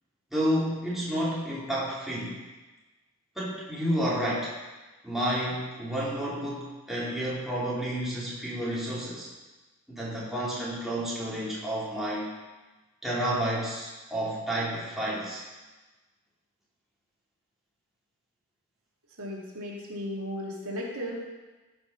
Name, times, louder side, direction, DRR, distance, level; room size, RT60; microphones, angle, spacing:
voice 1, 0.3-2.4 3.4-4.6 5.0-9.3 9.9-12.4 13.0-15.4, right 1 dB, ahead, -8 dB, 2.5 m, -30 dB
voice 2, 19.2-21.3, equal, 85° right, -3 dB, 2.4 m, -35 dB
14.0 x 5.9 x 5.7 m, 1.2 s
head